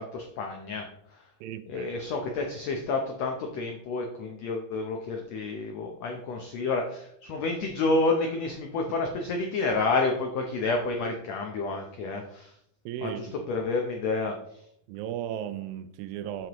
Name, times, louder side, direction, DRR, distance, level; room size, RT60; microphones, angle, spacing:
voice 1, 0.0-1.3 1.7-12.6 13.0-14.6, left 3 dB, 85° left, 1.4 m, -30 dB
voice 2, 1.4-1.9 12.9-13.4 14.9-16.5, right 10 dB, 85° right, 2.4 m, -35 dB
7.7 x 7.5 x 3.0 m
omnidirectional pair, 4.1 m